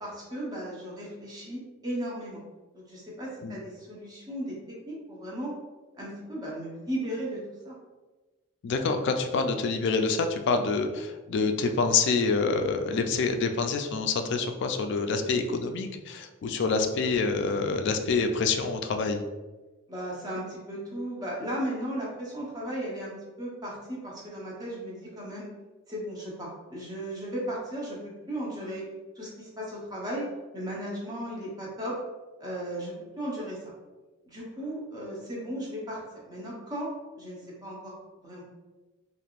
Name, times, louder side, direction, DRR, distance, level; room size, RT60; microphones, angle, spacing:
voice 1, 0.0-2.4 2.7-5.5 6.0-7.4 7.6-7.8 19.9-25.5 25.9-28.8 29.2-30.3 30.5-32.0 32.4-33.6 34.3-37.9 38.2-38.4, right 1 dB, 20° right, -5 dB, 0.8 m, -36 dB
voice 2, 8.6-19.2, left 4 dB, 55° left, 6 dB, 0.3 m, -27 dB
3.3 x 2.5 x 2.4 m, 1.2 s
head